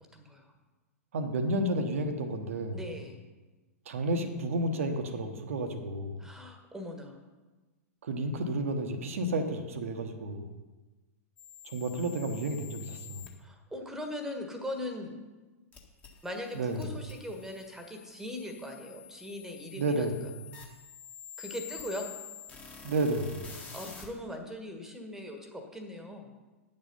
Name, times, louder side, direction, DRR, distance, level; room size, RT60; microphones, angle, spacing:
voice 1, 0.1-0.5 2.7-3.2 6.2-7.2 13.4-15.1 16.2-20.3 21.4-22.1 23.5-26.3, left 1 dB, 5° right, 3 dB, 1.5 m, -40 dB
voice 2, 1.1-2.8 3.9-6.2 8.0-10.5 11.6-13.3 16.5-16.8 19.7-20.1 22.8-23.4, right 1 dB, 60° right, 6 dB, 1.1 m, -31 dB
sound 1, 11.4-13.3 15.7-24.1, left 7 dB, 15° left, 1.7 m, -48 dB
9.9 x 7.6 x 5.5 m, 1.2 s
figure-of-eight pair, 100°, 8 cm